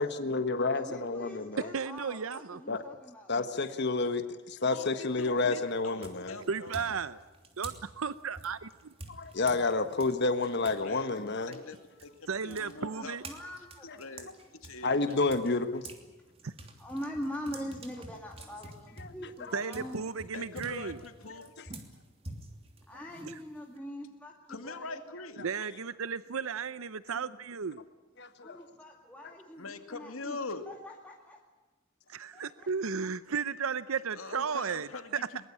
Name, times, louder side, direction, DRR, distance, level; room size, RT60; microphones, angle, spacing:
voice 1, 0.0-1.7 2.7-2.8 3.3-6.4 9.1-11.5 14.8-15.8 19.0-19.1 28.2-28.7, left 3 dB, 55° left, 9 dB, 1.4 m, -30 dB
voice 2, 0.7-3.3 12.5-14.0 16.3-16.4 16.8-20.1 22.9-25.0 28.4-30.4 30.7-31.4 32.3-32.7 33.0-33.1, equal, 5° left, -1 dB, 2.2 m, -43 dB
voice 3, 1.7-2.6 6.5-7.2 7.6-8.9 12.3-13.2 16.4-16.5 19.5-21.0 23.3-23.4 25.4-27.8 32.1-35.3, right 6 dB, 85° right, 15 dB, 0.7 m, -34 dB
voice 4, 4.6-6.8 7.1-7.2 10.6-13.2 14.0-15.3 20.3-21.5 24.5-25.4 29.6-30.7 34.1-35.5, left 3 dB, 85° left, 8 dB, 2.3 m, -43 dB
sound 1, 5.1-5.5 6.0-10.8 11.2-16.0 16.4-23.8, right 2 dB, 30° right, 3.0 m, -48 dB
22.5 x 21.0 x 8.6 m, 1.2 s
head